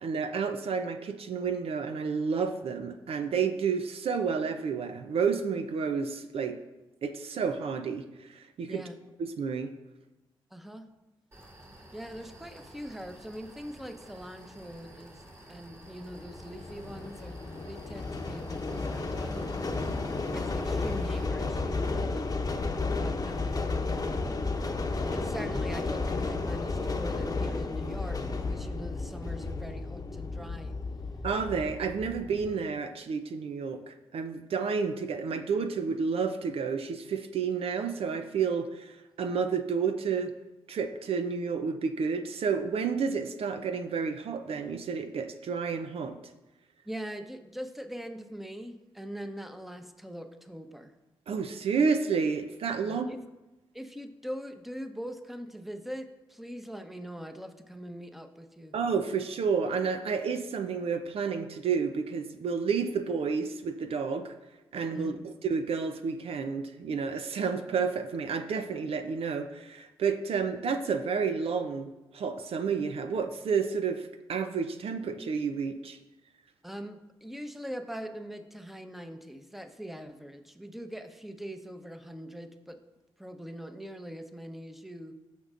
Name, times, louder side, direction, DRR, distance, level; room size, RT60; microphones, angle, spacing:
voice 1, 0.0-6.6 7.0-8.8 9.2-9.7 31.2-40.4 40.7-46.1 51.3-53.1 58.7-64.4 64.7-71.9 72.1-76.0, right 5 dB, 65° right, 8 dB, 0.6 m, -30 dB
voice 2, 10.5-10.9 11.9-15.2 15.5-19.5 20.3-22.3 23.0-23.8 25.1-30.7 46.9-50.9 52.8-53.2 53.7-58.7 64.9-65.3 76.6-82.8 83.2-85.1, equal, ahead, 7 dB, 1.0 m, -42 dB
sound 1, 11.3-21.3, right 1 dB, 30° right, 2.8 m, -51 dB
sound 2, 16.0-32.5, left 3 dB, 35° left, 0.9 m, -33 dB
14.0 x 5.3 x 2.5 m, 1.0 s
hypercardioid pair, 40°, 11 cm